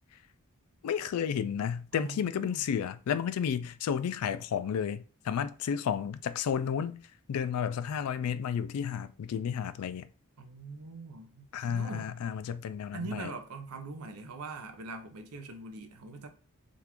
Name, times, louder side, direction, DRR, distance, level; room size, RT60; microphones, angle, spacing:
voice 1, 0.8-10.1 11.5-13.3, left 7 dB, 80° left, 0.3 m, -32 dB
voice 2, 1.9-2.7 10.4-12.1 12.9-16.3, right 3 dB, 85° right, 0.6 m, -42 dB
3.7 x 2.4 x 2.9 m
head